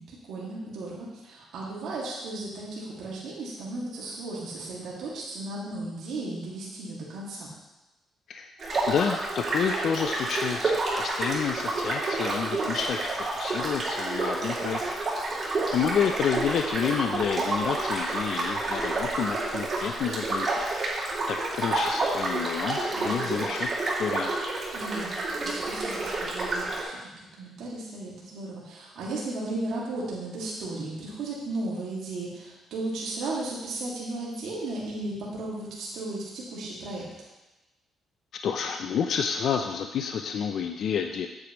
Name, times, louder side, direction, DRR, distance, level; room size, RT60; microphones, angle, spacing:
voice 1, 0.0-7.5 22.9-23.5 24.7-27.0 27.4-37.1, right 2 dB, 80° right, -6 dB, 2.1 m, -35 dB
sound 1, 8.6-26.8, right 2 dB, 45° right, 2.7 m, -29 dB
voice 2, 8.9-14.8 15.7-20.7 21.3-24.3 38.4-41.3, left 7 dB, 65° left, 5 dB, 0.4 m, -29 dB
8.3 x 8.2 x 3.1 m, 1.0 s
cardioid pair, 90°, 0 cm